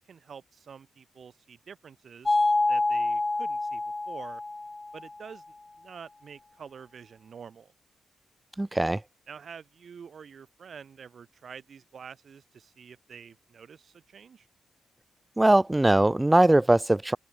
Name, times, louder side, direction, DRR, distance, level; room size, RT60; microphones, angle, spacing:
voice 1, 0.0-2.4 2.7-4.4 4.9-5.4 5.8-7.7 9.3-14.5, right 6 dB, 50° right, 3.4 m, -47 dB
sound 1, 2.3-5.1, left 2 dB, 15° left, 1.6 m, -27 dB
voice 2, 8.6-9.0 15.4-17.2, right 1 dB, 10° right, 0.5 m, -21 dB
open air
wide cardioid pair, 155°, 0 cm